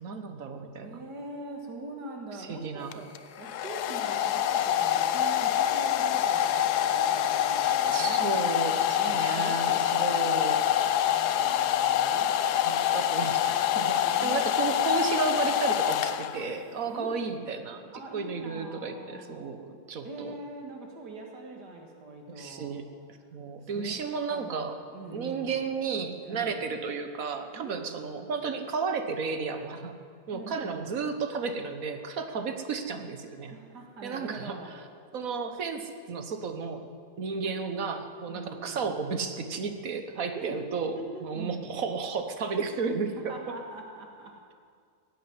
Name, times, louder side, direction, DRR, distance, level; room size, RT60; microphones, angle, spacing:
voice 1, 0.0-1.0 2.4-3.0 7.9-10.6 12.6-17.8 18.1-20.3 22.3-22.8 23.3-24.7 25.1-29.9 30.3-33.6 34.0-34.8 35.1-36.9 37.2-43.3, right 5 dB, 55° right, 7 dB, 1.6 m, -33 dB
voice 2, 0.8-3.1 3.4-8.2 9.0-10.7 11.1-12.3 14.0-14.8 16.8-17.3 17.9-19.5 20.0-22.8 23.6-24.0 24.3-25.6 26.2-26.6 27.5-28.3 30.3-31.0 33.5-34.7 38.3-38.9 40.3-40.6 41.0-41.7 43.3-44.6, right 2 dB, 75° right, 2 dB, 2.4 m, -43 dB
sound 1, 2.8-11.1, left 3 dB, 10° right, 3.2 m, -57 dB
Domestic sounds home sounds, 2.9-16.6, left 10 dB, 75° left, 1.1 m, -26 dB
17.0 x 8.6 x 9.6 m, 2.1 s
omnidirectional pair, 1.8 m